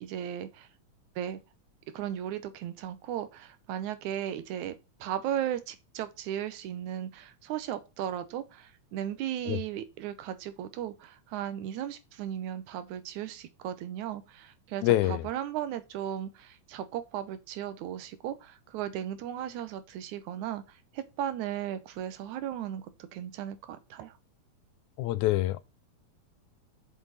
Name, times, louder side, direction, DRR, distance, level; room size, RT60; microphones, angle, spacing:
voice 1, 0.0-0.7 1.2-1.4 1.9-4.7 5.0-20.6 20.9-24.1, right 10 dB, 85° right, 2.3 m, -36 dB
voice 2, 14.8-15.3 25.0-25.6, left 15 dB, 90° left, 2.0 m, -25 dB
7.3 x 6.2 x 4.1 m
omnidirectional pair, 3.4 m